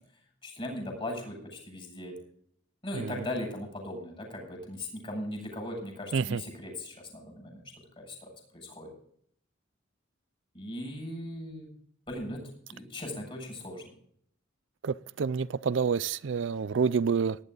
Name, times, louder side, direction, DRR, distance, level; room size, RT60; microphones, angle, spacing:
voice 1, 0.4-2.1 2.8-7.6 8.0-8.9 10.5-11.7 12.1-12.4 12.7-13.9, left 1 dB, 25° left, 7.4 m, -38 dB
voice 2, 14.8-17.4, right 5 dB, 65° right, 0.4 m, -28 dB
18.5 x 11.0 x 4.0 m
head